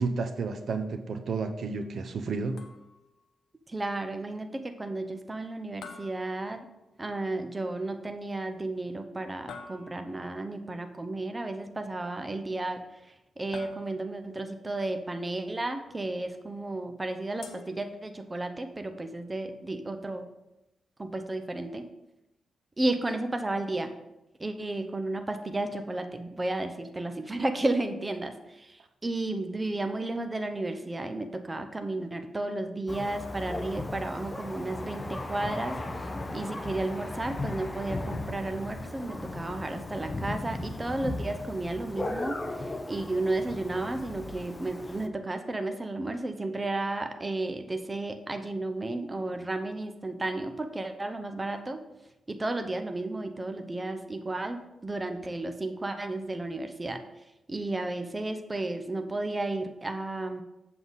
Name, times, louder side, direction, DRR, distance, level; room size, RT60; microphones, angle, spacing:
voice 1, 0.0-2.6, right 4 dB, 60° right, 8 dB, 0.7 m, -31 dB
sound 1, 2.6-3.2 5.8-7.1 9.5-10.4 13.5-14.3 17.4-18.4, left 5 dB, 85° left, 0.9 m, -48 dB
voice 2, 3.7-6.7 7.0-12.8 13.4-20.3 21.0-21.9 22.8-24.0 24.4-35.8 36.3-51.8 52.3-54.6 54.8-57.0 57.5-60.4, right 2 dB, 20° right, 7 dB, 0.6 m, -33 dB
Thunder, 32.9-45.1, left 2 dB, 20° left, 0.7 m, -37 dB
7.7 x 7.2 x 4.0 m, 0.93 s
wide cardioid pair, 125°, 0 cm